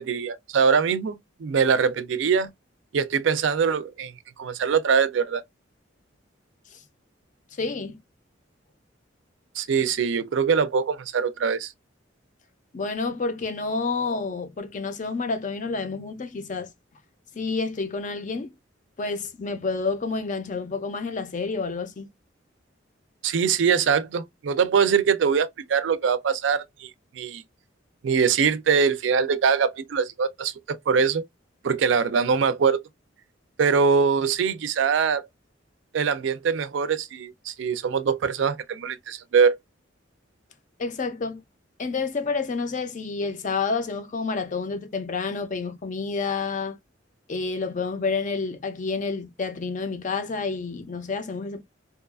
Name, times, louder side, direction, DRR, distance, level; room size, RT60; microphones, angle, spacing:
voice 1, 0.0-2.5 2.9-4.1 4.4-5.4 9.6-11.7 23.2-26.9 27.1-27.4 28.0-31.2 31.6-32.8 33.6-35.3 35.9-39.6, right 6 dB, 70° right, 0.4 m, -23 dB
voice 2, 7.6-8.0 12.7-16.7 17.3-18.5 19.0-22.1 40.8-41.4 41.8-46.8 47.3-51.6, left 4 dB, 40° left, 0.5 m, -29 dB
2.8 x 2.3 x 2.3 m
head